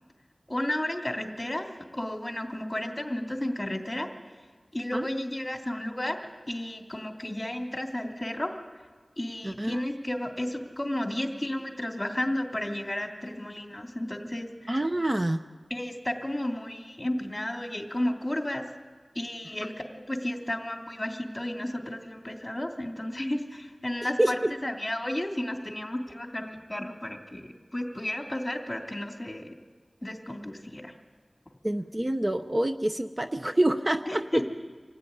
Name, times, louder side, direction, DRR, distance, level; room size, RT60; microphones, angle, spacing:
voice 1, 0.5-4.1 4.7-6.2 6.5-8.5 9.2-14.5 15.7-18.6 19.1-29.5 30.0-30.9 34.1-34.4, left 1 dB, 25° left, 2 dB, 3.1 m, -33 dB
voice 2, 9.4-9.8 14.7-15.4 24.2-24.5 31.6-34.4, right 1 dB, 35° right, 7 dB, 0.8 m, -27 dB
25.5 x 16.0 x 9.7 m, 1.5 s
wide cardioid pair, 50°, 0 cm